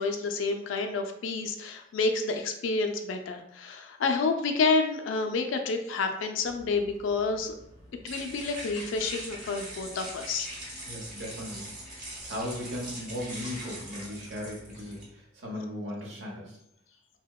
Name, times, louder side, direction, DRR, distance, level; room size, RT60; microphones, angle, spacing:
voice 1, 0.0-7.5 8.0-10.5 14.4-14.5, left 4 dB, 75° left, 6 dB, 0.3 m, -29 dB
sound 1, 6.4-15.0, right 1 dB, 45° right, 0.8 m, -42 dB
voice 2, 10.8-16.6, left 1 dB, 75° right, -2 dB, 0.8 m, -37 dB
2.8 x 2.1 x 2.2 m, 0.75 s
head